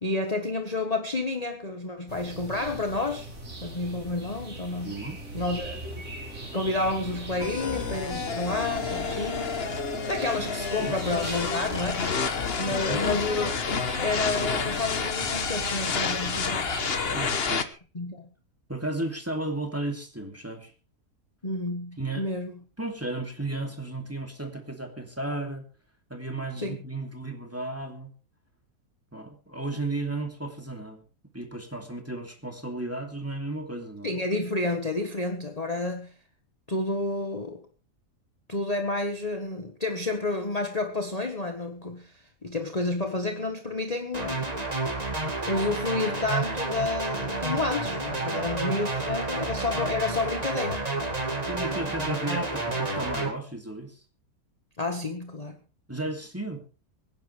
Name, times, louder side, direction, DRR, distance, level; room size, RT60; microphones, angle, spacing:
voice 1, 0.0-3.3 3.6-5.0 5.3-5.9 6.5-9.5 10.1-12.1 12.6-16.7 17.9-18.3 21.4-22.6 26.6-26.8 34.0-36.1 36.7-37.6 38.5-44.5 45.5-50.8 52.0-52.1 54.8-55.6, left 2 dB, 25° left, 1.4 m, -30 dB
sound 1, 2.1-17.4, right 1 dB, 60° right, 4.1 m, -39 dB
voice 2, 4.8-5.2 10.8-10.9 12.7-13.0 17.1-17.8 18.7-20.7 22.0-22.3 22.8-25.7 26.1-28.1 29.1-31.0 31.3-34.1 48.2-48.4 51.5-54.0 55.9-56.6, right 2 dB, 10° right, 2.7 m, -34 dB
sound 2, 7.4-17.6, left 5 dB, 40° left, 1.3 m, -29 dB
sound 3, 44.1-53.3, right 2 dB, 25° right, 2.4 m, -30 dB
24.5 x 10.5 x 3.4 m
omnidirectional pair, 1.6 m